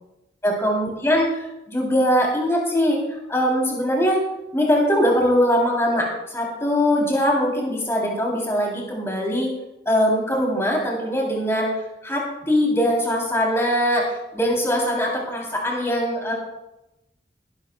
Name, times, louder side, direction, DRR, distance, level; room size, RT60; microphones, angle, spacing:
voice 1, 0.4-3.0 3.3-4.2 4.5-9.5 9.8-11.7 12.0-16.3, equal, 15° left, -2 dB, 3.3 m, -21 dB
21.0 x 11.5 x 2.3 m, 0.94 s
head